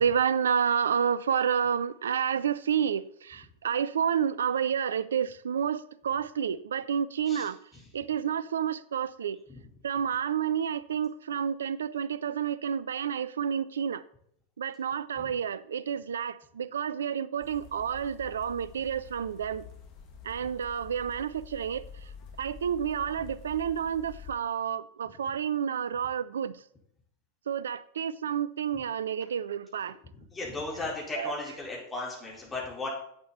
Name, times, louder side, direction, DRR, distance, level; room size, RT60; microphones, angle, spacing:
voice 1, 0.0-7.6 7.9-9.4 9.8-14.0 14.6-19.6 20.2-21.8 22.4-26.6 27.5-30.0 31.1-31.3, right 8 dB, 65° right, 0.5 m, -30 dB
sound 1, 17.4-24.3, left 7 dB, 40° left, 1.9 m, -48 dB
voice 2, 30.3-32.9, left 3 dB, 15° left, 4.4 m, -36 dB
11.0 x 8.3 x 4.3 m
figure-of-eight pair, 90°, 0 cm